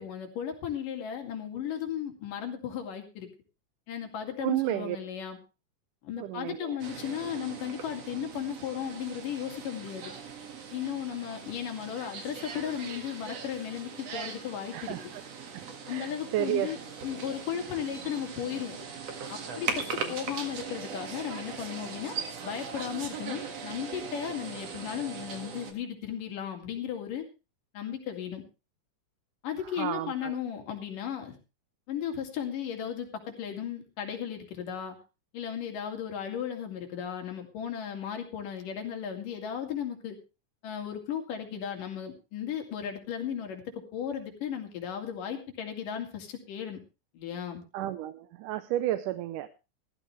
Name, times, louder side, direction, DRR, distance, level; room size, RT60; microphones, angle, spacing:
voice 1, 0.0-3.3 3.9-5.4 6.0-10.1 10.7-15.0 15.9-18.8 19.3-27.3 27.7-28.4 29.4-31.4 31.9-35.0 35.3-40.2 40.6-43.6 43.9-46.8 47.1-47.6, left 9 dB, 90° left, 4 dB, 4.0 m, -35 dB
voice 2, 4.4-5.0 6.2-6.8 14.7-15.2 15.5-16.7 20.0-20.1 29.8-30.3 47.7-49.5, right 13 dB, 80° right, 11 dB, 2.3 m, -32 dB
sound 1, 6.8-25.7, right 6 dB, 55° right, 2.8 m, -40 dB
16.0 x 13.5 x 3.2 m, 0.30 s
omnidirectional pair, 3.7 m